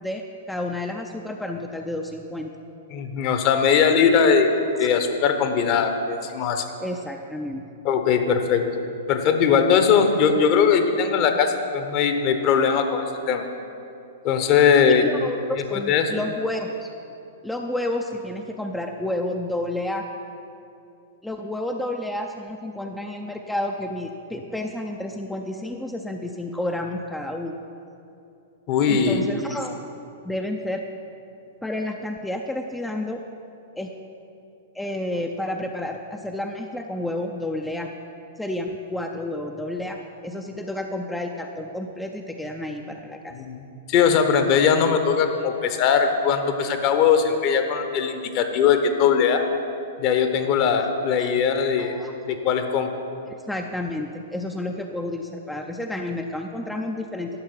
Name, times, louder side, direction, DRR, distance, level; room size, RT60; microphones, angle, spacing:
voice 1, 0.0-2.5 4.8-4.9 6.3-6.5 6.8-7.6 14.9-16.9 17.4-20.0 21.2-27.6 28.9-29.8 30.2-30.8 31.6-33.2 33.8-33.9 34.7-37.9 38.4-43.3 51.2-51.3 51.8-52.1 53.3-57.4, left 1 dB, 5° left, 2 dB, 0.5 m, -30 dB
voice 2, 2.9-4.5 4.8-6.6 7.8-8.6 9.1-13.4 14.2-15.1 15.7-16.1 28.7-29.2 43.3-43.6 43.9-49.4 50.0-52.0 52.2-52.9, left 6 dB, 40° left, 6 dB, 1.0 m, -20 dB
11.5 x 6.5 x 5.8 m, 2.7 s
figure-of-eight pair, 105°, 0 cm